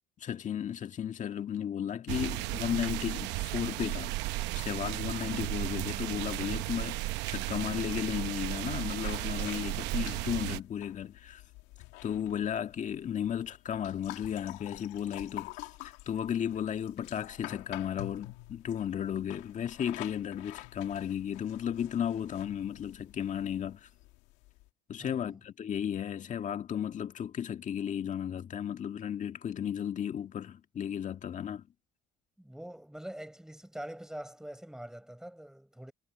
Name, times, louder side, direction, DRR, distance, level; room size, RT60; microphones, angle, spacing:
voice 1, 0.2-4.2 4.5-11.4 12.0-15.5 15.8-23.9 24.9-31.7, left 9 dB, 45° left, 1.8 m, -34 dB
sound 1, 2.1-10.6, right 18 dB, 80° right, 0.8 m, -34 dB
sound 2, 9.0-24.7, left 19 dB, 90° left, 2.1 m, -48 dB
voice 2, 25.0-25.4 32.4-35.9, right 1 dB, 5° right, 6.1 m, -44 dB
cardioid pair, 100°, 18 cm